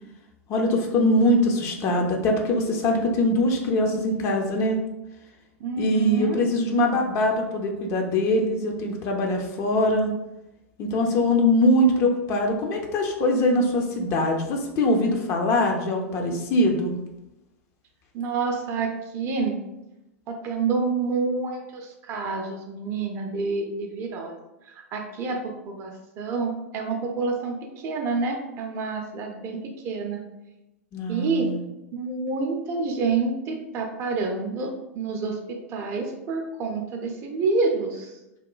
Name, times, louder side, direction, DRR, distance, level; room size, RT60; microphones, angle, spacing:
voice 1, 0.5-4.8 5.8-10.1 10.8-16.9 30.9-31.6, left 1 dB, 35° left, 2 dB, 0.4 m, -22 dB
voice 2, 5.6-6.4 18.1-19.6 20.3-24.4 24.6-30.2 31.1-31.5 31.9-38.2, right 4 dB, 35° right, 2 dB, 0.4 m, -28 dB
2.9 x 2.1 x 2.3 m, 0.93 s
figure-of-eight pair, 90°, 8 cm